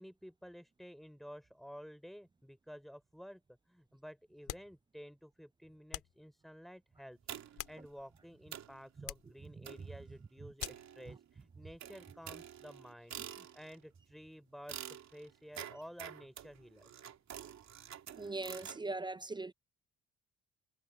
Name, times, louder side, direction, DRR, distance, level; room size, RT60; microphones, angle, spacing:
voice 1, 0.0-3.4 3.7-7.2 7.5-17.0, equal, ahead, 3.6 m, -52 dB
sound 1, 4.4-4.8 5.9-6.2 7.3-8.2 9.0-9.4 10.6-10.9, left 13 dB, 85° left, 2.3 m, -45 dB
sound 2, 7.3-7.7 8.2-8.3 8.5-8.8 9.6-10.0 10.6-11.3 11.8-13.8 14.7-18.8, right 9 dB, 65° right, 2.6 m, -48 dB
voice 2, 18.1-19.5, right 2 dB, 15° right, 0.3 m, -40 dB
cardioid pair, 90°, 30 cm